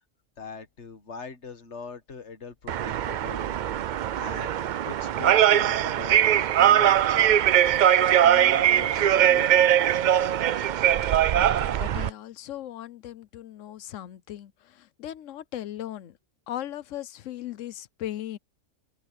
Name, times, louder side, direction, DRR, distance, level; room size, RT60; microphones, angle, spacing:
voice 1, 0.4-3.6 4.2-7.4 8.2-10.0, left 5 dB, 65° left, 1.8 m, -42 dB
sound 1, 2.7-12.1, right 10 dB, 70° right, 0.4 m, -21 dB
voice 2, 11.3-16.2 16.5-18.4, left 12 dB, 80° left, 1.1 m, -38 dB
open air
omnidirectional pair, 1.3 m